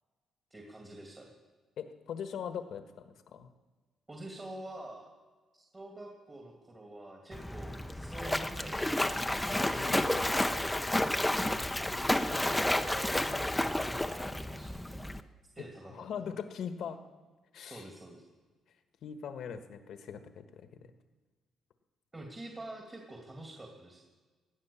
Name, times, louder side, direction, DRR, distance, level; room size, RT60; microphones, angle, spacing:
voice 1, 0.5-1.3 4.1-5.1 5.5-10.8 12.1-13.3 13.6-16.3 17.6-18.2 22.1-24.0, right 1 dB, 25° right, 1 dB, 2.7 m, -47 dB
voice 2, 1.8-3.5 9.8-10.3 11.3-12.1 15.9-17.0 17.5-17.9 19.0-20.8, left 7 dB, 70° left, 9 dB, 1.3 m, -41 dB
Splash splatter, 7.3-15.2, left 1 dB, 5° left, 0.7 m, -31 dB
17.5 x 10.5 x 7.1 m, 1.3 s
cardioid pair, 90°, 0 cm